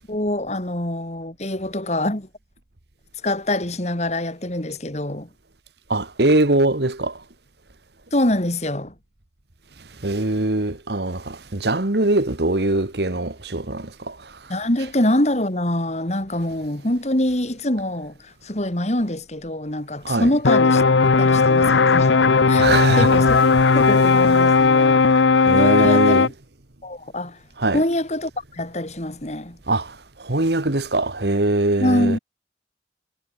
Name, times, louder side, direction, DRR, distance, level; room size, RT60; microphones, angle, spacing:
voice 1, 0.1-2.3 3.2-5.3 8.1-8.9 14.5-20.8 21.2-22.1 22.5-22.7 23.0-23.4 23.7-25.1 25.5-26.3 26.8-27.4 27.7-29.6 31.8-32.2, left 1 dB, 35° left, 2.8 m, -24 dB
voice 2, 5.9-7.1 10.0-14.1 20.0-20.3 22.6-23.2 25.5-26.3 27.6-27.8 29.7-29.9 30.2-32.2, right 2 dB, 65° right, 1.7 m, -22 dB
sound 1, 20.4-26.3, left 4 dB, 85° left, 0.8 m, -16 dB
head